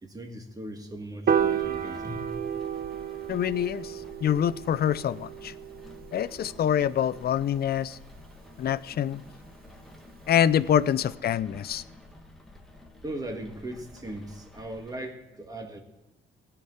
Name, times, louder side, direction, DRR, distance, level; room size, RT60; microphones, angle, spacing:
voice 1, 0.0-2.4 13.0-15.8, right 1 dB, 20° right, 1.8 m, -38 dB
Piano, 1.3-7.6, right 8 dB, 50° right, 0.8 m, -32 dB
Rain, 1.4-15.0, left 2 dB, ahead, 1.6 m, -50 dB
voice 2, 3.3-5.5 6.1-8.0 8.6-9.2 10.3-11.8, left 9 dB, 50° left, 0.5 m, -25 dB
17.0 x 5.9 x 7.9 m
cardioid pair, 90°, 20 cm